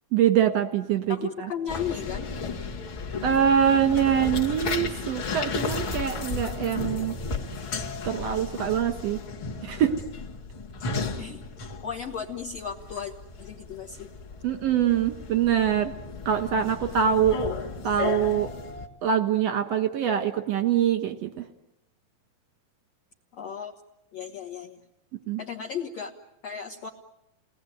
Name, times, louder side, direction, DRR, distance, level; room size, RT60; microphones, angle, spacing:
voice 1, 0.1-1.5 3.2-7.1 8.0-9.2 9.6-9.9 14.4-15.9 16.3-17.4 17.8-18.5 19.0-21.4 25.3-25.4, right 9 dB, 65° right, 7 dB, 1.7 m, -24 dB
voice 2, 1.1-2.3 11.2-13.1 13.4-14.1 23.3-23.7 24.1-24.8 25.4-26.1 26.4-26.9, left 7 dB, 55° left, 0 dB, 1.9 m, -35 dB
sound 1, 1.7-18.9, left 4 dB, 40° left, 2.0 m, -34 dB
29.5 x 20.0 x 9.3 m, 0.87 s
omnidirectional pair, 4.8 m